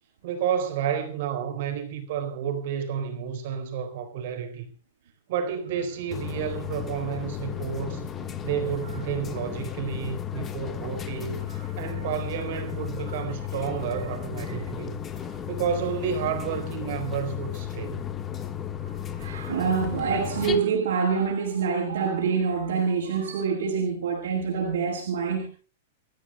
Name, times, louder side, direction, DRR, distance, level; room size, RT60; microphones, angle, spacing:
voice 1, 0.2-4.7 5.3-8.1 8.4-11.4 11.8-15.0 15.5-18.1, right 8 dB, 45° right, 4.0 m, -30 dB
sound 1, 6.1-20.6, left 10 dB, 15° left, 1.3 m, -34 dB
voice 2, 13.5-14.1 14.4-14.6 15.2-15.3 18.8-25.5, right 5 dB, 85° right, 6.1 m, -27 dB
30.0 x 15.0 x 2.2 m
supercardioid pair, 175°, 0 cm